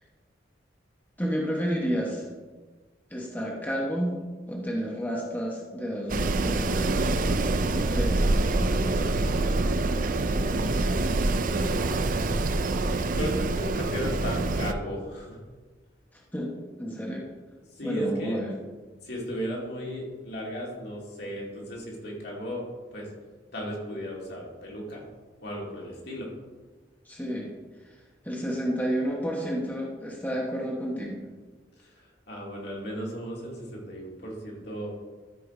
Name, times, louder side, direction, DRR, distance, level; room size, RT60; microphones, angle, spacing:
voice 1, 1.2-2.3 3.1-4.2 4.5-7.1 7.6-9.0 16.1-16.5 16.8-17.2 17.8-18.5 27.0-27.5 27.8-28.0 28.2-31.2, equal, 10° left, -3 dB, 1.2 m, -31 dB
Wind, 6.1-14.7, right 2 dB, 45° right, 0.5 m, -25 dB
voice 2, 10.2-11.8 13.1-15.4 17.7-18.4 19.0-22.6 22.9-23.1 23.5-25.0 25.4-26.3 31.8-34.9, equal, 60° left, -2 dB, 2.6 m, -36 dB
13.0 x 4.9 x 5.0 m, 1.4 s
head